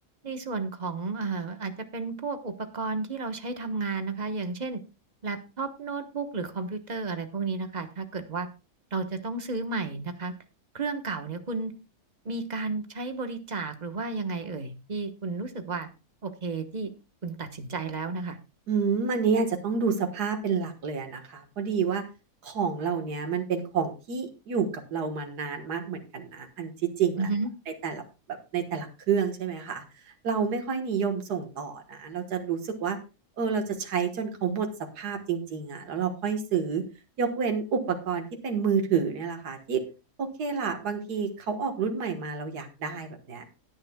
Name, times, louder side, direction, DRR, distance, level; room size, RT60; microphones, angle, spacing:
voice 1, 0.2-4.8 5.2-8.5 8.9-10.3 10.7-11.7 12.2-15.9 16.2-16.9 17.2-18.4 27.2-27.5, right 3 dB, 30° right, 8 dB, 1.2 m, -32 dB
voice 2, 18.7-22.0 22.4-27.3 27.8-28.0 28.5-29.8 30.2-33.0 33.4-34.7 35.0-36.8 37.2-39.8 40.2-43.4, right 6 dB, 85° right, 5 dB, 2.0 m, -29 dB
16.5 x 9.8 x 2.3 m, 0.30 s
omnidirectional pair, 1.7 m